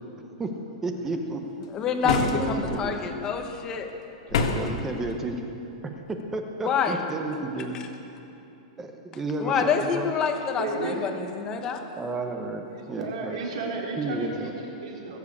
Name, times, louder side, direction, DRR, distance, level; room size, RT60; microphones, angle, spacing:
voice 1, 0.8-1.4 2.0-2.9 4.3-5.4 6.1-7.8 8.8-10.1 12.0-13.4 14.0-14.5, right 3 dB, 10° right, 4 dB, 0.8 m, -32 dB
voice 2, 1.7-3.9 6.6-7.0 9.4-11.9, left 6 dB, 15° left, 5 dB, 1.0 m, -27 dB
sound 1, 2.0-2.8 4.3-4.8, left 4 dB, 55° left, 1.5 m, -26 dB
voice 3, 10.6-11.3 12.7-15.2, right 3 dB, 60° right, -2 dB, 3.5 m, -34 dB
21.0 x 7.6 x 8.4 m, 2.9 s
supercardioid pair, 180°, 4 cm